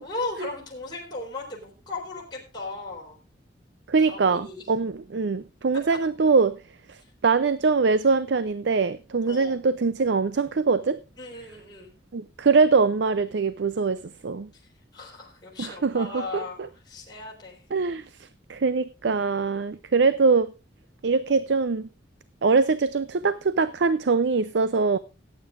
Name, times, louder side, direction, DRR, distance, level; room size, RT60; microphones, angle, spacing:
voice 1, 0.0-3.2 4.1-4.6 9.2-9.6 11.2-11.9 14.9-17.6 19.7-19.8, left 3 dB, 25° left, 3.9 m, -36 dB
voice 2, 3.9-6.6 6.9-11.0 12.1-14.5 15.6-16.4 17.7-20.5 21.0-21.9 22.4-25.0, right 4 dB, 65° right, 0.5 m, -23 dB
17.5 x 9.2 x 2.5 m
head